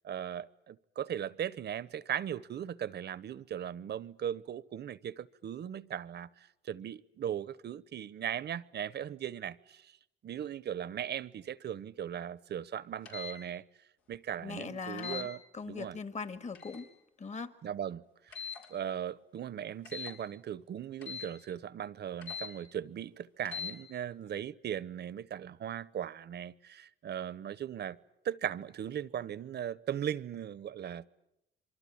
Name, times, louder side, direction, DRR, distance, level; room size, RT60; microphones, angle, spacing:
voice 1, 0.0-6.3 6.6-9.9 10.2-13.6 14.1-15.4 15.7-16.0 17.6-18.4 18.7-28.0 28.2-31.1, right 9 dB, 55° right, 0.9 m, -38 dB
sound 1, 13.1-13.4 15.0-15.3 16.5-16.9 18.3-18.7 19.9-20.2 21.0-21.3 22.2-22.5 23.4-23.7, left 6 dB, 90° left, 5.5 m, -41 dB
voice 2, 14.4-15.3 15.5-16.9 17.2-17.5, left 4 dB, 35° left, 1.9 m, -40 dB
26.5 x 24.0 x 8.7 m
cardioid pair, 90°, 20 cm